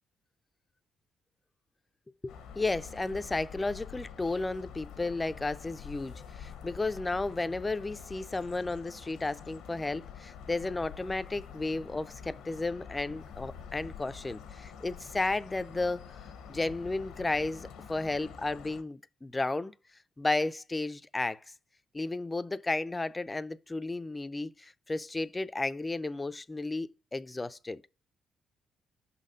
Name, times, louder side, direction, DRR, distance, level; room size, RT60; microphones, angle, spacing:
voice 1, 2.2-16.0 16.5-19.7 20.2-21.4 21.9-27.8, left 2 dB, 20° left, 0.4 m, -33 dB
sound 1, 2.3-18.8, left 7 dB, 90° left, 0.9 m, -47 dB
5.8 x 4.2 x 5.0 m
cardioid pair, 90°, 0 cm